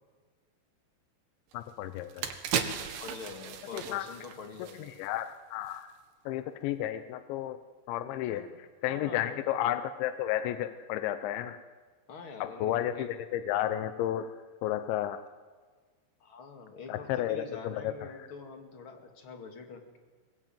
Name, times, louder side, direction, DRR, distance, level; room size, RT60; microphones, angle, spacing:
voice 1, 1.5-2.3 3.7-4.0 5.0-5.9 6.3-7.6 7.9-8.5 8.8-11.6 12.4-14.4 14.6-15.2 16.9-18.1, left 12 dB, 85° left, 10 dB, 3.2 m, -32 dB
sound 1, 1.5-1.6 2.0-5.3 5.6-5.8, right 8 dB, 90° right, 4.0 m, -36 dB
voice 2, 3.0-4.9 8.2-8.6 8.9-9.4 12.1-13.1 16.2-20.0, left 4 dB, 35° left, 4 dB, 2.3 m, -45 dB
22.0 x 21.5 x 9.2 m, 1.5 s
omnidirectional pair, 5.2 m